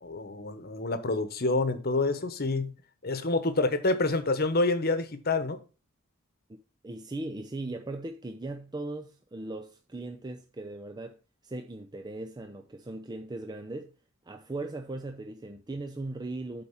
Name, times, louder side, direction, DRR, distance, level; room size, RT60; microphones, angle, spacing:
voice 1, 0.0-2.7 3.0-5.6, left 2 dB, 45° left, 1.1 m, -27 dB
voice 2, 6.8-13.9 14.2-16.6, right 2 dB, 20° right, 0.5 m, -38 dB
8.3 x 4.3 x 5.6 m
head